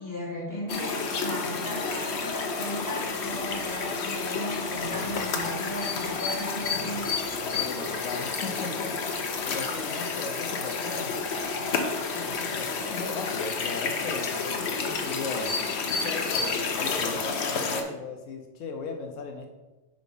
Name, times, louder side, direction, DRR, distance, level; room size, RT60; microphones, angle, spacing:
voice 1, 0.0-7.5 9.9-10.1, equal, 15° left, -7 dB, 2.5 m, -36 dB
sound 1, 0.7-17.8, left 4 dB, 60° left, 1.0 m, -30 dB
voice 2, 4.8-5.3 7.4-9.0 9.5-11.2 12.1-15.6 15.9-19.5, left 4 dB, 80° left, 4 dB, 1.0 m, -37 dB
5.1 x 4.5 x 5.4 m, 1.1 s
omnidirectional pair, 1.3 m